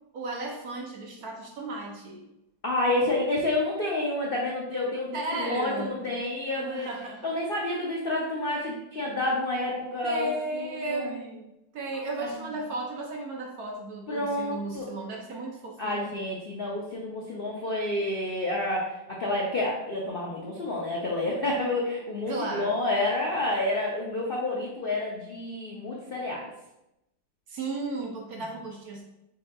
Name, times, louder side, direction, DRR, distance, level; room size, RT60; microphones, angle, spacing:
voice 1, 0.1-2.2 5.1-6.1 6.6-7.3 10.0-11.5 11.7-16.1 22.3-22.8 27.5-29.0, right 2 dB, 65° right, 0 dB, 1.0 m, -35 dB
voice 2, 2.6-6.9 7.2-11.1 12.2-12.3 14.1-14.9 15.8-26.5, left 2 dB, 65° left, -3 dB, 0.5 m, -29 dB
6.1 x 3.7 x 2.3 m, 0.88 s
omnidirectional pair, 2.0 m